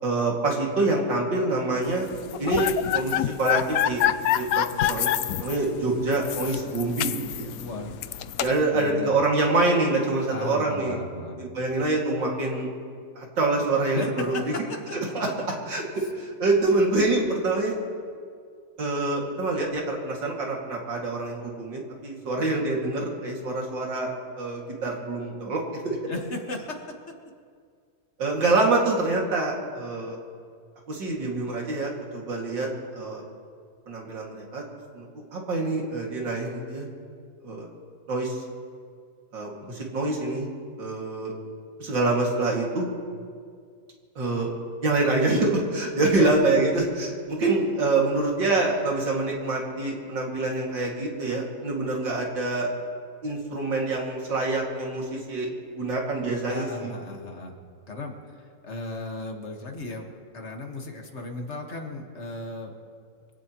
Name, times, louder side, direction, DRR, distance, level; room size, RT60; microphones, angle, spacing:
voice 1, 0.0-2.1 2.4-4.0 4.3-5.1 5.4-7.5 8.4-11.0 11.4-12.7 13.2-14.3 15.1-17.7 18.8-26.0 28.2-30.2 30.9-32.7 32.9-33.2 33.9-34.6 34.9-36.9 37.4-37.7 38.1-38.4 39.3-40.5 40.8-41.3 41.8-42.9 44.2-44.5 44.8-52.7 53.2-55.5 55.7-56.9, right 2 dB, 80° right, -1 dB, 3.1 m, -26 dB
sound 1, 2.1-8.6, left 11 dB, 75° left, 0.8 m, -27 dB
voice 2, 7.6-8.0 8.7-9.2 10.3-11.4 13.9-15.0 26.1-27.1 46.1-46.3 56.4-57.6 57.9-62.7, left 2 dB, 40° left, 2 dB, 1.8 m, -35 dB
24.5 x 16.5 x 3.1 m, 2.1 s
omnidirectional pair, 2.0 m